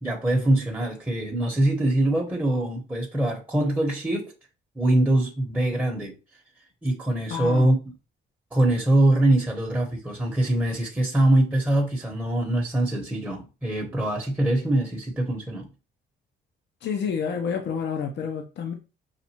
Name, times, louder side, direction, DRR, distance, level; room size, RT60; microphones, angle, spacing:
voice 1, 0.0-4.3 4.7-6.1 6.8-7.8 8.5-15.7, right 1 dB, 10° right, 1.0 m, -23 dB
voice 2, 7.3-7.7 16.8-18.7, left 6 dB, 60° left, 0.7 m, -29 dB
5.8 x 2.5 x 2.9 m
cardioid pair, 90°, 20 cm